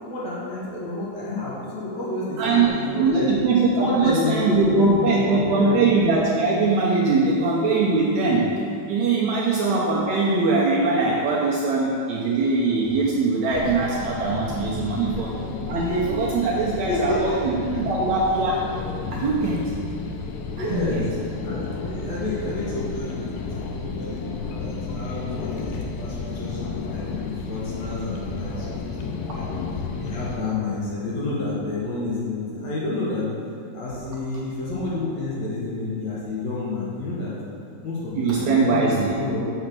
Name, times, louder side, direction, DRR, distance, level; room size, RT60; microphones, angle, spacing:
voice 1, 0.1-3.3 3.8-5.9 16.7-17.6 20.6-21.0 21.4-29.5 30.0-33.3 33.7-37.3 37.8-39.4, left 2 dB, 55° left, -7 dB, 2.4 m, -30 dB
voice 2, 2.4-8.5 8.9-15.3 15.7-17.5 17.8-18.6 19.1-19.6 20.6-21.0 38.1-39.2, right 3 dB, 70° right, -5 dB, 1.9 m, -21 dB
sound 1, 13.5-30.4, left 4 dB, 90° left, 2.3 m, -32 dB
6.4 x 5.9 x 6.1 m, 2.5 s
omnidirectional pair, 4.0 m